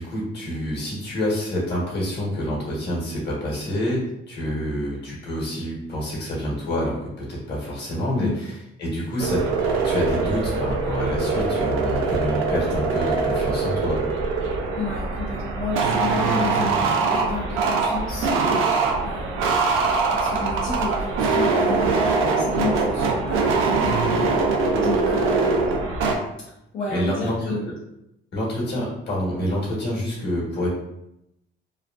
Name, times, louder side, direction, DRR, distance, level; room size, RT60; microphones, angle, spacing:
voice 1, 0.0-9.4 9.8-14.0 26.9-27.5 28.3-30.7, equal, 60° left, -5 dB, 1.4 m, -27 dB
voice 2, 8.1-8.5 14.7-18.3 19.0-19.6 20.1-24.0 24.4-25.8 26.7-27.7, left 3 dB, 85° left, -8 dB, 0.8 m, -31 dB
sound 1, 9.2-26.2, right 4 dB, 90° right, 0.5 m, -23 dB
3.2 x 2.4 x 2.5 m, 0.83 s
cardioid pair, 90°, 20 cm